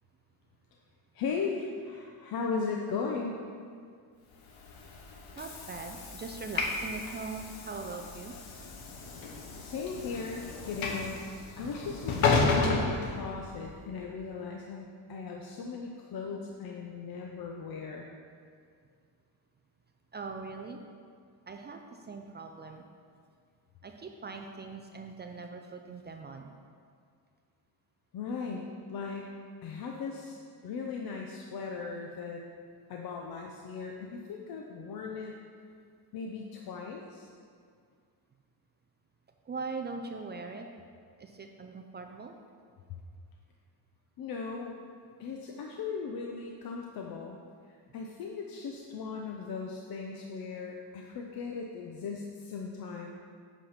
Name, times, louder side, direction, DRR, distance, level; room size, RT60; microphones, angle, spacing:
voice 1, 1.1-3.4 9.6-11.2 11.6-18.1 28.1-29.3 29.6-32.4 32.9-35.4 36.1-37.3 44.2-44.7 45.2-47.4 47.7-53.1, left 5 dB, 45° left, 1 dB, 0.7 m, -38 dB
Train / Sliding door, 4.5-13.8, left 4 dB, 70° left, 1.3 m, -32 dB
voice 2, 5.4-8.3 20.1-20.8 21.5-22.8 23.8-26.6 39.5-40.7 41.2-42.3, right 4 dB, 25° right, 4 dB, 0.3 m, -41 dB
8.3 x 5.1 x 5.7 m, 2.2 s
cardioid pair, 135°, 48 cm